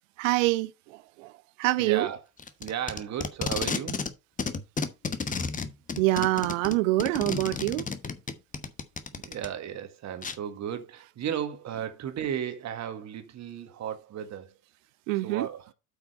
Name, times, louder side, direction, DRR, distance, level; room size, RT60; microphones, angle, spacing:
voice 1, 0.2-1.3 1.6-2.1 6.0-7.9 15.1-15.5, right 19 dB, 55° right, 0.7 m, -25 dB
voice 2, 1.8-2.2 2.6-4.1 9.2-14.6 15.2-15.7, right 9 dB, 35° right, 1.7 m, -34 dB
Packing tape duct tape, 2.4-4.1 4.4-9.5 10.2-10.3, left 5 dB, 15° left, 1.0 m, -32 dB
8.3 x 5.9 x 4.2 m
figure-of-eight pair, 70°, 46 cm